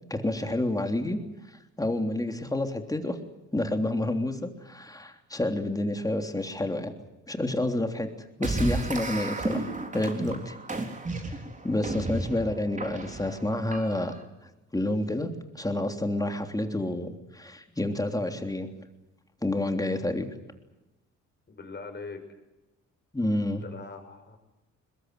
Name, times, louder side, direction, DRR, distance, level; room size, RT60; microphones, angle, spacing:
voice 1, 0.1-1.2 1.8-3.2 3.5-6.9 7.3-8.1 8.4-9.7 9.9-10.9 11.2-14.2 14.7-18.7 19.4-20.3 23.1-23.6, left 1 dB, 10° left, 5 dB, 3.4 m, -29 dB
sound 1, 8.4-14.2, right 2 dB, 25° right, 3.9 m, -33 dB
voice 2, 21.5-22.2 23.6-24.4, left 4 dB, 35° left, 6 dB, 6.3 m, -41 dB
22.0 x 21.5 x 9.6 m, 0.98 s
cardioid pair, 90°, 30 cm